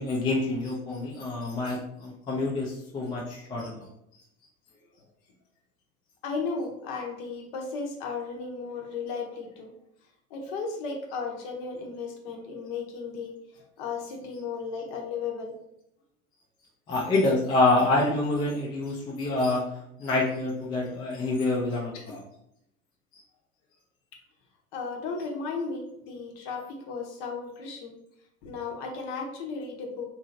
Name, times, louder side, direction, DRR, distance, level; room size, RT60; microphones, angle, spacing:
voice 1, 0.0-3.9 16.9-19.6 20.0-22.2, left 2 dB, 10° left, -3 dB, 0.4 m, -27 dB
voice 2, 6.2-9.7 10.3-15.6 21.9-22.2 24.7-27.9 28.4-30.1, left 4 dB, 45° left, 2 dB, 0.8 m, -35 dB
3.0 x 2.8 x 2.5 m, 0.79 s
figure-of-eight pair, 85°, 43 cm